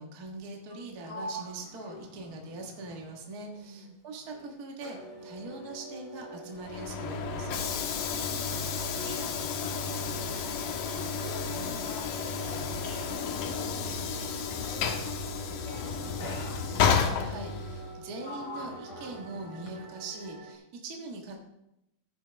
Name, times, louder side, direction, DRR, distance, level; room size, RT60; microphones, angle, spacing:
voice 1, 0.0-7.7 17.2-21.4, right 2 dB, 40° right, 0 dB, 1.5 m, -42 dB
Sliding door, 0.6-3.9 4.2-14.4 15.3-15.6 16.2-17.1 17.7-20.2, equal, 40° left, 2.8 m, -47 dB
voice 2, 3.4-3.9 5.1-5.2 7.9-16.6, right 1 dB, 75° right, -4 dB, 5.9 m, -48 dB
sound 1, 4.9-20.5, right 2 dB, 10° right, 3.8 m, -45 dB
Train / Sliding door, 6.6-18.0, left 6 dB, 90° left, 2.7 m, -32 dB
15.0 x 9.8 x 3.5 m, 0.86 s
omnidirectional pair, 3.7 m